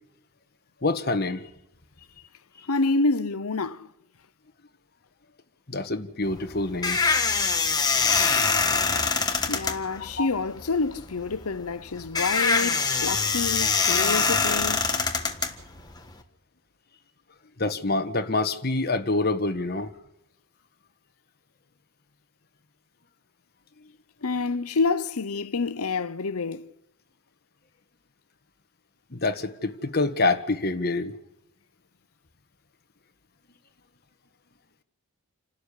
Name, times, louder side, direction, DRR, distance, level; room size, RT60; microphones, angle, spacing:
voice 1, 0.8-1.5 5.7-7.0 10.2-10.3 17.6-19.9 29.1-31.1, left 2 dB, 45° left, 1.4 m, -26 dB
voice 2, 2.7-3.9 9.5-14.8 24.2-26.7, left 3 dB, 80° left, 0.9 m, -27 dB
sound 1, 6.2-16.2, left 4 dB, 20° left, 1.5 m, -24 dB
28.5 x 12.5 x 8.5 m
head